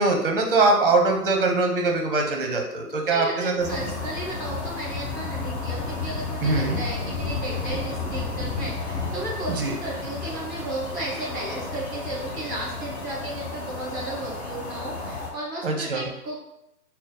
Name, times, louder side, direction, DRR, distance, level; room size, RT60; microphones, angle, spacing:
voice 1, 0.0-3.7 6.4-6.8 9.6-9.7 15.6-16.1, right 3 dB, 35° right, 2 dB, 0.6 m, -22 dB
voice 2, 3.1-16.4, right 1 dB, 15° left, -4 dB, 0.6 m, -34 dB
sound 1, 3.6-15.3, left 3 dB, 45° left, 1.0 m, -32 dB
3.8 x 2.0 x 4.0 m, 0.85 s
hypercardioid pair, 145°, 48 cm